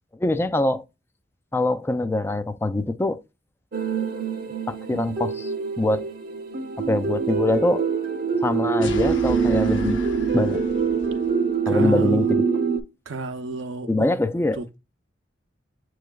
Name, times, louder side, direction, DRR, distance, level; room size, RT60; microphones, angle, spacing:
voice 1, 0.1-0.8 1.5-3.2 4.7-6.1 6.8-7.9 8.4-10.0 10.3-10.6 11.7-12.4 13.9-14.6, left 2 dB, 15° left, 0.3 m, -24 dB
sound 1, 3.7-12.8, right 5 dB, 50° right, 0.7 m, -24 dB
sound 2, 8.8-11.4, equal, 90° left, 0.8 m, -36 dB
voice 2, 11.7-12.3 13.1-14.2 14.5-14.8, right 3 dB, 90° right, 0.6 m, -32 dB
7.3 x 3.1 x 2.3 m
head